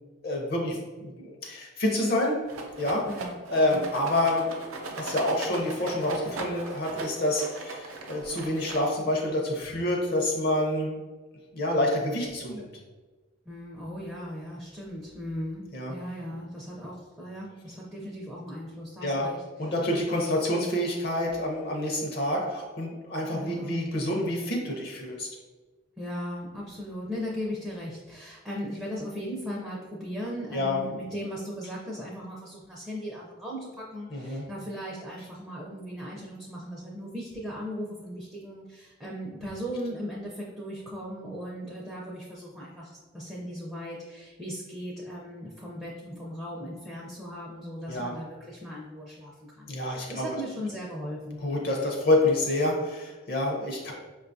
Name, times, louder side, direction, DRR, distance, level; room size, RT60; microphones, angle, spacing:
voice 1, 0.2-2.5 2.8-3.1 3.5-11.0 11.5-12.7 15.7-15.9 19.0-25.3 30.5-30.8 34.1-34.5 47.9-48.2 49.7-50.4 51.4-53.9, left 1 dB, 50° left, 0 dB, 0.6 m, -28 dB
Rattle, 2.5-9.2, right 3 dB, 85° right, 0.5 m, -39 dB
voice 2, 3.1-3.4 3.7-3.8 13.5-19.4 23.3-23.8 26.0-51.4, equal, 5° right, -5 dB, 0.4 m, -38 dB
5.2 x 2.3 x 2.5 m, 1.3 s
head